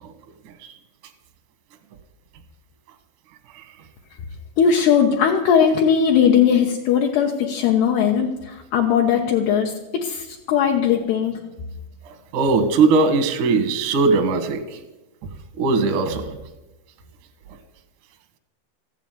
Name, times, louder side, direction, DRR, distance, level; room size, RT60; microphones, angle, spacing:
voice 1, 4.6-11.4, left 7 dB, 80° left, 1 dB, 2.4 m, -19 dB
voice 2, 12.0-14.8 15.6-16.3, right 4 dB, 75° right, 6 dB, 1.8 m, -20 dB
14.5 x 8.4 x 9.3 m, 1.0 s
omnidirectional pair, 6.0 m